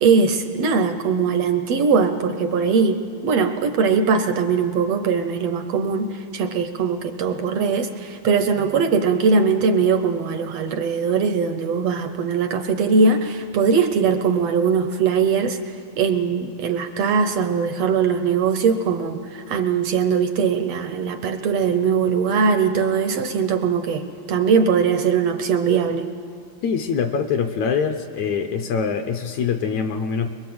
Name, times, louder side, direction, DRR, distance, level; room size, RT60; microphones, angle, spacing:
voice 1, 0.0-26.1, right 5 dB, 75° right, 8 dB, 1.5 m, -21 dB
voice 2, 26.6-30.3, left 6 dB, 70° left, 7 dB, 1.9 m, -24 dB
22.5 x 22.5 x 7.8 m, 2.3 s
omnidirectional pair, 3.8 m